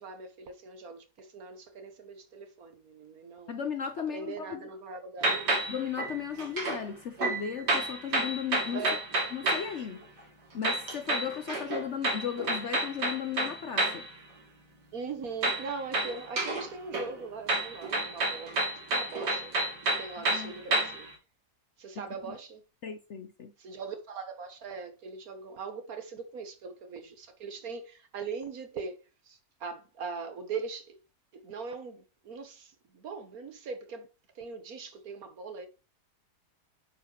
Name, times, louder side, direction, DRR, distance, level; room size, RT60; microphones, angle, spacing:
voice 1, 0.0-3.6 4.0-5.5 8.7-9.0 14.9-18.6 18.9-19.5 19.9-21.1 21.8-22.6 23.6-31.0 31.3-34.1 34.3-35.7, right 4 dB, 60° right, 1.6 m, -41 dB
voice 2, 3.5-4.7 5.7-8.8 9.3-10.0 10.5-14.1 20.2-20.5 22.3-22.4 22.8-23.5, left 8 dB, 55° left, 0.8 m, -36 dB
sound 1, 5.2-6.8 7.2-9.8 10.6-14.1 15.4-16.7 16.9-21.1, right 2 dB, 85° right, 2.9 m, -30 dB
8.7 x 5.1 x 2.9 m
omnidirectional pair, 1.8 m